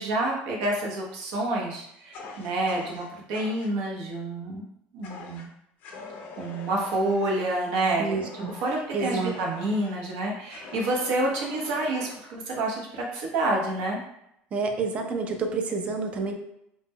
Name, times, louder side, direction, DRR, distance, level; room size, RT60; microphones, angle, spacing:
voice 1, 0.0-4.6 4.9-5.5 6.4-14.0, right 2 dB, 75° right, -1 dB, 0.7 m, -28 dB
Fire, 2.1-3.7 5.0-5.5 5.8-10.0 10.5-12.3, left 3 dB, 40° left, 0.4 m, -44 dB
voice 2, 8.0-8.6 8.9-9.4 14.5-16.3, right 4 dB, 30° right, 5 dB, 0.3 m, -29 dB
2.1 x 2.1 x 3.4 m, 0.78 s
cardioid pair, 165°, 4 cm